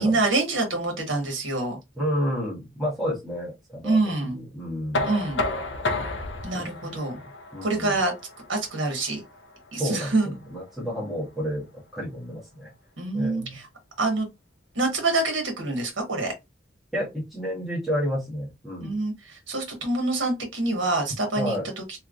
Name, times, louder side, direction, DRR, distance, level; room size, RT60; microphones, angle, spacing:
voice 1, 0.0-1.8 3.8-4.4 5.0-5.4 6.4-7.2 7.6-8.1 8.5-9.2 9.7-10.3 13.0-13.6 14.0-14.3 14.7-16.3 18.8-21.5, right 2 dB, 85° right, 1.3 m, -26 dB
voice 2, 1.9-5.1 6.5-7.2 7.5-8.0 9.7-11.6 11.9-12.7 13.1-13.6 16.9-19.0 21.3-21.7, equal, ahead, 1.3 m, -30 dB
Knock, 4.9-10.7, left 2 dB, 65° left, 0.6 m, -32 dB
3.3 x 2.8 x 2.5 m
head